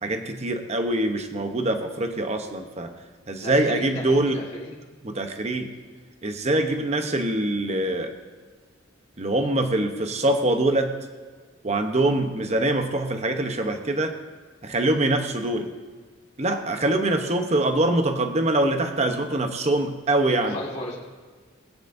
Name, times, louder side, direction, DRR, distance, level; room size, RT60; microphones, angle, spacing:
voice 1, 0.0-2.9 3.3-4.4 5.0-5.7 6.2-8.1 9.2-11.0 11.6-14.2 14.6-15.7 16.4-20.6, right 1 dB, 30° right, 6 dB, 0.9 m, -24 dB
voice 2, 3.4-4.8 16.8-16.9 20.3-21.0, left 1 dB, 35° left, -5 dB, 2.0 m, -35 dB
19.5 x 9.2 x 2.7 m, 1.5 s
head